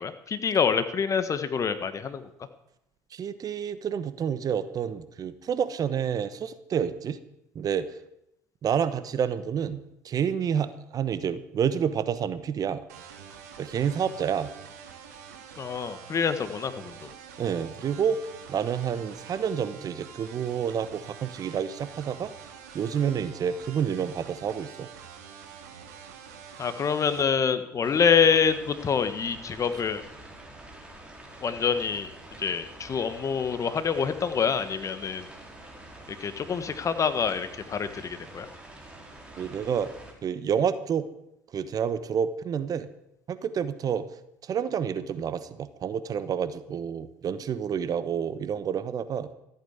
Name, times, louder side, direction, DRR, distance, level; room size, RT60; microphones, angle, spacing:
voice 1, 0.0-2.2 15.6-17.1 26.6-30.0 31.4-32.1 32.4-35.3 36.2-38.5, left 6 dB, 35° left, 11 dB, 1.4 m, -26 dB
voice 2, 3.1-7.2 7.5-7.9 8.6-9.8 10.0-12.8 13.6-14.5 17.4-18.2 18.5-22.3 22.7-24.9 39.4-39.9 40.2-41.1 41.5-42.9 43.3-44.0 44.4-49.3, right 8 dB, 45° right, 13 dB, 1.1 m, -29 dB
sound 1, 12.9-27.2, right 7 dB, 80° right, 2.1 m, -46 dB
sound 2, 27.8-40.1, right 1 dB, 10° right, 4.1 m, -47 dB
14.0 x 8.8 x 8.1 m, 0.80 s
hypercardioid pair, 70°, 9 cm